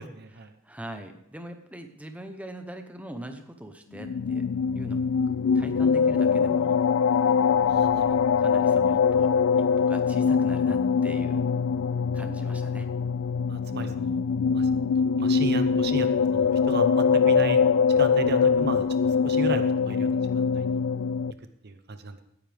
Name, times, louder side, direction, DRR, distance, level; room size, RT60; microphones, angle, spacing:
voice 1, 0.0-0.5 7.7-8.2 13.5-14.2 14.5-14.7 15.2-17.6 18.0-18.8 19.2-20.7 21.6-22.2, right 3 dB, 50° right, 9 dB, 0.8 m, -34 dB
voice 2, 0.6-4.4 4.7-5.0 5.5-6.8 8.4-9.3 9.6-11.5 12.1-12.9, right 1 dB, 5° right, 6 dB, 0.9 m, -41 dB
sound 1, 3.9-21.3, left 6 dB, 65° left, 0.3 m, -23 dB
17.0 x 9.9 x 3.5 m, 0.75 s
head